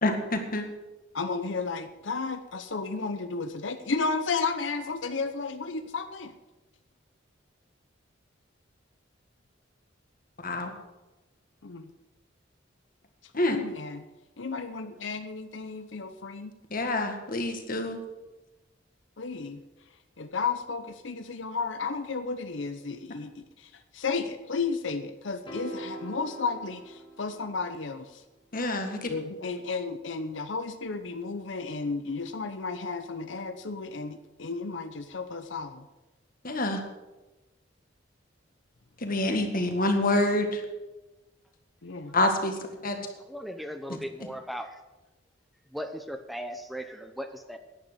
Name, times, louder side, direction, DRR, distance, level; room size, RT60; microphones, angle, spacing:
voice 1, 0.0-0.6 10.4-10.7 13.3-13.6 16.7-18.0 28.5-29.1 36.4-36.8 39.0-40.6 42.1-43.0, left 2 dB, 50° left, 5 dB, 1.8 m, -27 dB
voice 2, 1.1-6.3 11.6-11.9 13.5-14.0 14.4-16.6 19.2-19.6 20.2-23.4 23.9-28.2 29.1-35.8 41.8-42.1, left 4 dB, 75° left, 9 dB, 0.8 m, -33 dB
sound 1, 25.5-27.9, right 2 dB, 25° left, 1.9 m, -42 dB
voice 3, 43.3-44.8 45.7-47.6, equal, ahead, 6 dB, 0.7 m, -37 dB
10.5 x 8.9 x 7.9 m, 1.1 s
head